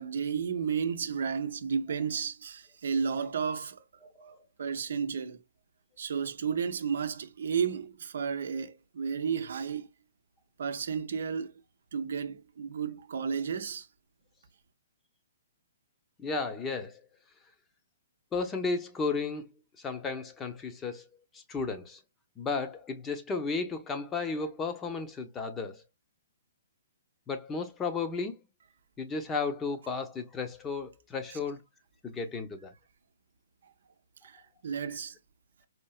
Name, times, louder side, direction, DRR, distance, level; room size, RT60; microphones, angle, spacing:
voice 1, 0.0-3.8 4.6-5.4 6.0-9.9 10.6-11.6 11.9-13.9 31.3-31.4 34.2-35.2, right 6 dB, 70° right, 0.6 m, -32 dB
voice 2, 16.2-17.0 18.3-19.5 19.8-21.0 21.3-22.0 22.4-25.8 27.3-28.4 29.0-31.6 32.0-32.7, left 4 dB, 15° left, 0.8 m, -34 dB
4.4 x 2.6 x 2.3 m
hypercardioid pair, 135°, 0 cm